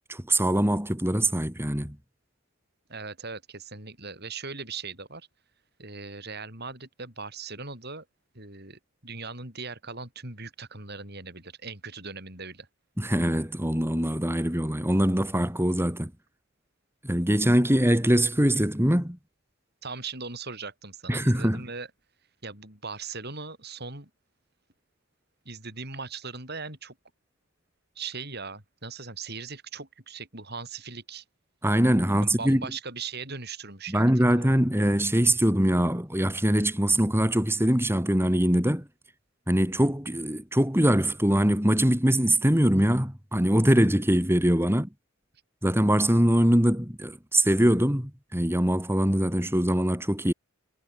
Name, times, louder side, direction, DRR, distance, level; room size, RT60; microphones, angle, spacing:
voice 1, 0.1-2.0 13.0-16.1 17.0-19.2 21.1-21.6 31.6-32.6 33.9-38.9 39.5-44.9 45.6-50.3, equal, 10° right, 4.5 m, -23 dB
voice 2, 2.9-5.3 5.8-8.0 8.3-12.7 19.8-21.9 22.4-24.1 25.4-26.9 27.9-31.2 32.1-34.5, right 4 dB, 50° right, 7.0 m, -39 dB
head